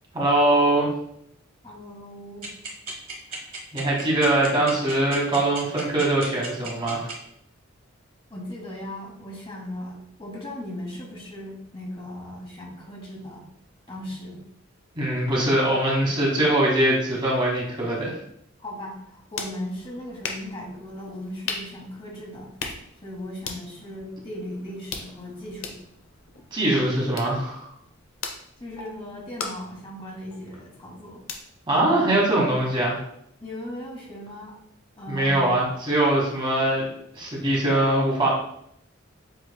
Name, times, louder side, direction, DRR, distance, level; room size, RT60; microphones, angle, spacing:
voice 1, 0.1-0.9 3.7-7.1 14.9-18.1 26.5-27.7 31.7-33.0 35.1-36.8 37.1-38.3, right 1 dB, 25° right, -3 dB, 1.2 m, -22 dB
voice 2, 1.6-2.5 8.3-13.5 13.9-14.5 18.6-22.5 23.0-25.8 28.6-31.2 31.8-32.1 33.4-34.6 35.0-35.5, left 1 dB, 25° left, -2 dB, 1.1 m, -37 dB
sound 1, 2.4-7.1, right 5 dB, 45° right, 1.4 m, -34 dB
sound 2, 18.9-32.6, left 4 dB, 75° left, 0.7 m, -40 dB
7.8 x 3.0 x 2.2 m, 0.72 s
head